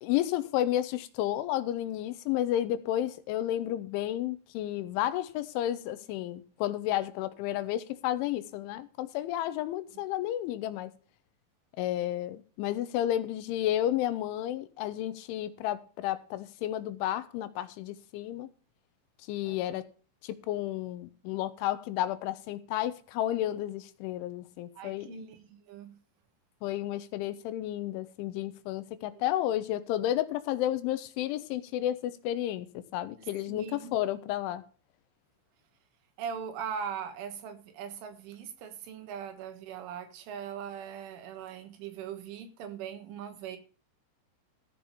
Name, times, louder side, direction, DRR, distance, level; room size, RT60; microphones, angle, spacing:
voice 1, 0.0-10.9 11.8-18.5 19.3-19.8 20.2-25.3 26.6-34.6, left 12 dB, 80° left, 3.0 m, -32 dB
voice 2, 19.5-19.8 24.8-26.0 29.1-29.2 33.5-33.9 36.2-43.6, right 7 dB, 75° right, 4.0 m, -40 dB
14.5 x 5.9 x 6.9 m
omnidirectional pair, 5.7 m